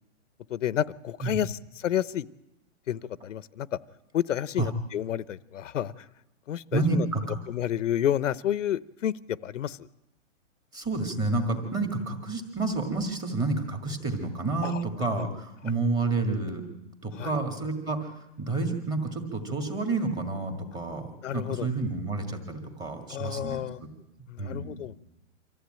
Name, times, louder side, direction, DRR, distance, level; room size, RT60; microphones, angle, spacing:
voice 1, 0.5-2.3 2.9-3.7 4.1-6.1 6.5-7.1 7.5-9.9 14.6-14.8 17.2-17.3 21.2-21.7 23.1-23.8 24.3-24.9, left 10 dB, 75° left, 19 dB, 0.9 m, -30 dB
voice 2, 6.7-7.4 10.7-16.6 17.0-21.1 21.3-23.6 24.4-24.8, right 3 dB, 10° right, 5 dB, 2.0 m, -29 dB
25.0 x 15.0 x 9.0 m, 0.90 s
hypercardioid pair, 170°, 38 cm